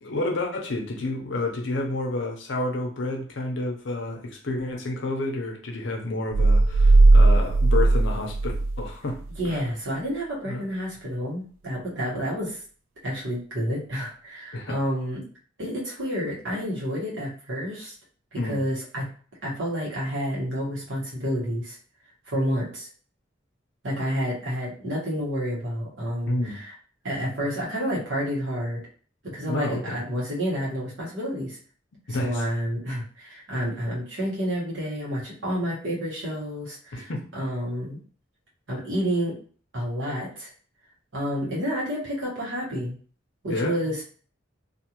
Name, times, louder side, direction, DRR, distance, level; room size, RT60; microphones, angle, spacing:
voice 1, 0.0-8.5 8.8-9.2 9.4-9.6 10.4-10.7 14.5-14.8 18.4-18.6 26.3-26.6 29.4-30.0 32.1-32.4 36.9-37.2 43.5-43.8, left 2 dB, 65° left, 1 dB, 0.7 m, -30 dB
sound 1, 6.3-8.9 9.2-9.3, right 2 dB, 90° right, 0.3 m, -17 dB
voice 2, 9.4-12.6 13.0-15.2 15.6-17.9 18.3-19.1 19.4-21.8 22.3-22.9 23.8-26.7 27.0-28.8 29.2-31.6 32.1-38.0 38.7-39.4 39.7-40.5 41.1-42.9 43.4-44.0, equal, 70° right, -5 dB, 1.2 m, -29 dB
2.6 x 2.5 x 2.9 m, 0.42 s
head